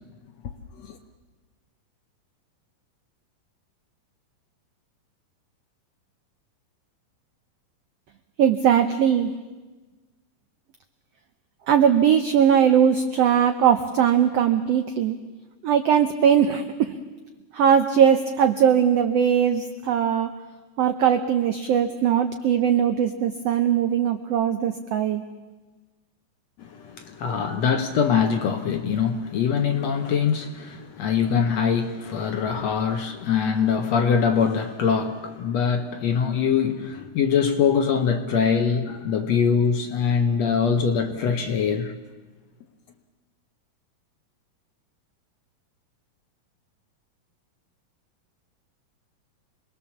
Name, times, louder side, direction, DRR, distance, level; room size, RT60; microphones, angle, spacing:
voice 1, 8.4-9.3 11.7-15.2 15.6-17.0 17.5-20.3 20.8-25.2, right 8 dB, 85° right, 1.4 m, -20 dB
voice 2, 26.6-42.0, left 6 dB, 65° left, 1.7 m, -23 dB
26.5 x 21.0 x 7.2 m
omnidirectional pair, 4.0 m